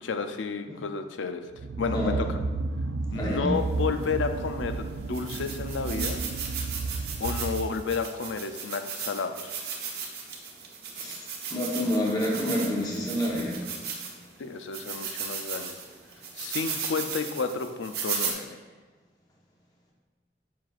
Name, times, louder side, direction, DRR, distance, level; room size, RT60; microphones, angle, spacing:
voice 1, 0.0-1.4 1.8-2.4 3.1-6.2 7.2-9.6 14.4-15.7 16.4-18.6, left 5 dB, 90° left, 8 dB, 0.5 m, -31 dB
sound 1, 1.5-8.1, right 3 dB, 75° right, 0.3 m, -32 dB
voice 2, 3.1-3.5 11.0-11.2 11.5-13.6, equal, 20° left, -4 dB, 0.9 m, -28 dB
sound 2, 4.0-4.1 4.7-4.8 5.1-14.3 14.7-18.3, right 6 dB, 60° right, 1.0 m, -36 dB
7.3 x 5.9 x 2.4 m, 1.3 s
head